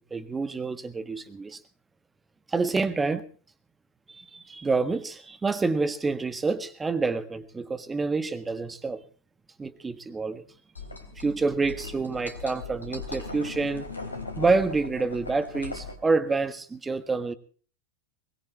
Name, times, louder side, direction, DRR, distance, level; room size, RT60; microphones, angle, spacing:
voice 1, 0.0-1.6 2.5-3.2 4.1-9.0 9.6-10.4 11.2-13.9 14.4-17.3, right 4 dB, 15° right, 1.5 m, -27 dB
sound 1, 10.7-15.9, left 3 dB, 80° left, 3.5 m, -39 dB
22.5 x 20.5 x 3.0 m
figure-of-eight pair, 90°, 0 cm